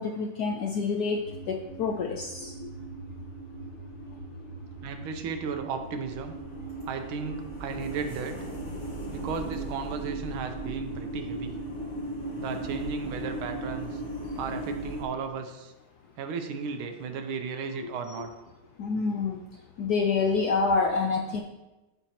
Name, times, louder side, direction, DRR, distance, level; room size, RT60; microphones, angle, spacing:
voice 1, 0.0-2.7 18.2-18.3 18.8-19.4 19.8-21.4, left 4 dB, 80° left, 2 dB, 0.9 m, -27 dB
sound 1, 1.2-15.0, right 1 dB, 40° left, 1.6 m, -37 dB
voice 2, 4.8-6.3 6.9-8.3 9.1-11.6 12.4-14.0 14.4-15.7 16.2-18.3, right 5 dB, 85° right, 6 dB, 1.6 m, -35 dB
13.0 x 4.5 x 2.9 m, 1.1 s
omnidirectional pair, 2.2 m